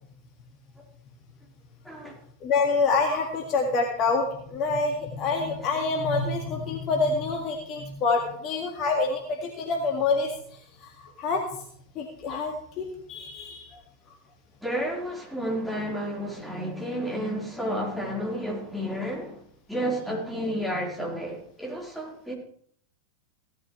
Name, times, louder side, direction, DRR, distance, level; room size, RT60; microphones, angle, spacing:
voice 1, 1.8-2.2 14.6-19.4 19.7-22.3, equal, ahead, 4.3 m, -31 dB
voice 2, 2.4-10.3 10.8-11.4 12.0-13.8, left 4 dB, 35° left, 2.0 m, -27 dB
17.0 x 13.0 x 3.3 m
figure-of-eight pair, 90°, 0 cm